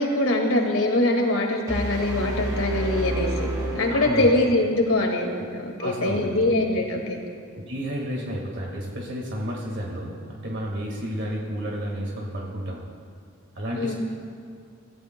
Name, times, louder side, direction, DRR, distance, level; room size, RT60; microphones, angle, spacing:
voice 1, 0.0-3.5 3.7-7.2 13.7-13.9, left 1 dB, 85° left, 2 dB, 2.0 m, -23 dB
sound 1, 1.7-4.7, right 1 dB, 20° right, 2.0 m, -30 dB
voice 2, 3.9-4.3 5.8-6.4 7.7-12.8 13.6-13.9, equal, 60° right, -1 dB, 1.8 m, -31 dB
26.0 x 14.5 x 2.2 m, 2.2 s
head